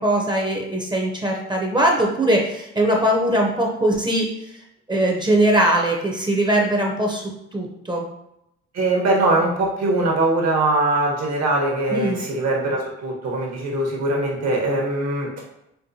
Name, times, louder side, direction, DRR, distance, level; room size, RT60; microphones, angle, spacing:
voice 1, 0.0-4.3 4.9-7.2 7.5-8.1 11.9-12.2, right 1 dB, 15° right, 0 dB, 0.6 m, -20 dB
voice 2, 8.7-15.3, right 2 dB, 60° right, -1 dB, 1.0 m, -21 dB
4.5 x 2.2 x 2.6 m, 0.82 s
cardioid pair, 90°, 30 cm